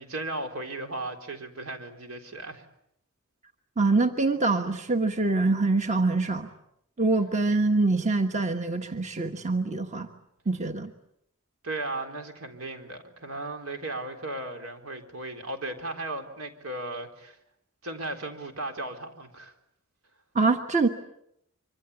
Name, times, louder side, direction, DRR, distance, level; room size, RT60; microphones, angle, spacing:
voice 1, 0.0-2.7 11.6-17.4 17.8-19.5, right 2 dB, 80° right, 4 dB, 3.8 m, -36 dB
voice 2, 3.8-6.5 7.0-10.1 10.5-10.9 20.3-20.9, right 3 dB, 35° right, 6 dB, 1.4 m, -24 dB
26.0 x 24.5 x 8.2 m, 0.76 s
head